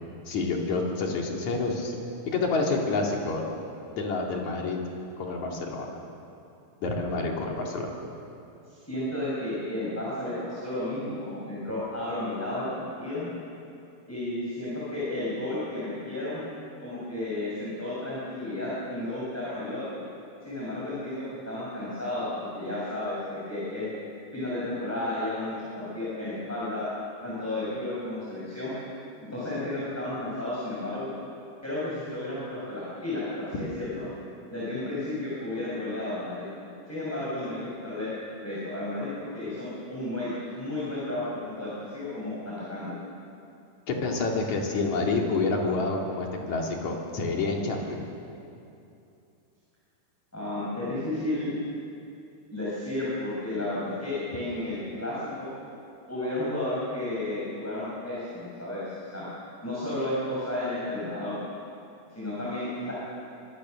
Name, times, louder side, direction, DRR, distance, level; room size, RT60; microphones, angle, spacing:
voice 1, 0.3-2.0 2.3-3.4 3.9-4.8 5.2-6.0 6.8-7.9 43.9-48.0, left 3 dB, 50° left, 0 dB, 3.7 m, -28 dB
voice 2, 8.7-13.3 14.1-16.4 16.8-20.0 20.4-23.9 24.3-26.9 27.2-28.7 29.3-31.1 31.6-34.0 34.5-36.5 36.9-38.1 38.4-42.9 50.3-51.5 52.5-55.5 56.1-59.2 59.6-61.3 62.1-62.9, left 1 dB, 5° left, -8 dB, 5.6 m, -32 dB
26.0 x 21.0 x 6.5 m, 2.7 s
omnidirectional pair, 4.4 m